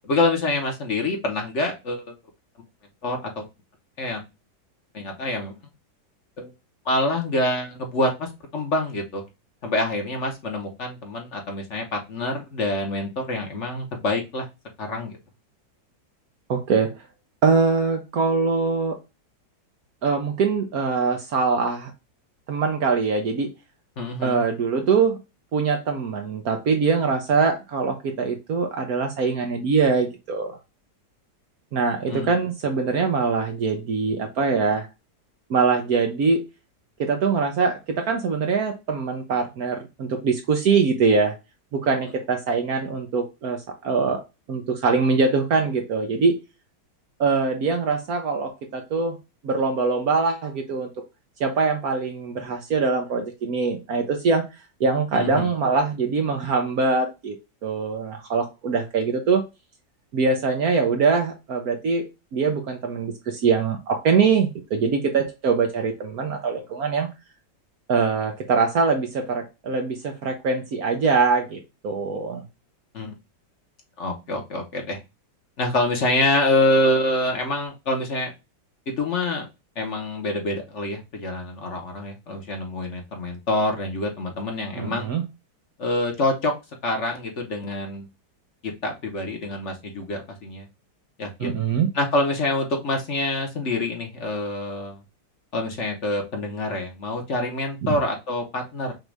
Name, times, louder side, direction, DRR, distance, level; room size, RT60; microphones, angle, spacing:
voice 1, 0.1-2.1 3.0-3.4 4.0-4.2 4.9-5.5 6.4-6.5 6.8-9.2 9.6-14.5 14.8-15.2 24.0-24.4 32.1-32.3 55.1-55.5 72.9-73.1 74.0-75.0 75.6-78.3 78.9-79.4 79.7-85.1 85.8-86.5 86.8-88.1 88.6-90.7 91.2-91.6 91.9-95.0 95.5-98.9, left 2 dB, 45° left, 3 dB, 1.3 m, -26 dB
voice 2, 16.5-16.9 17.4-19.0 20.0-21.9 22.5-23.5 24.2-25.2 25.5-30.6 31.7-34.9 35.5-36.4 37.0-41.3 41.7-44.2 44.5-46.4 47.2-49.2 49.4-50.9 51.4-54.4 54.8-57.3 57.6-59.4 60.1-62.0 62.3-67.1 67.9-72.4 84.8-85.2 91.4-91.9 97.8-97.9, right 4 dB, 60° right, 4 dB, 1.2 m, -23 dB
6.2 x 2.6 x 3.3 m, 0.25 s
omnidirectional pair, 1.9 m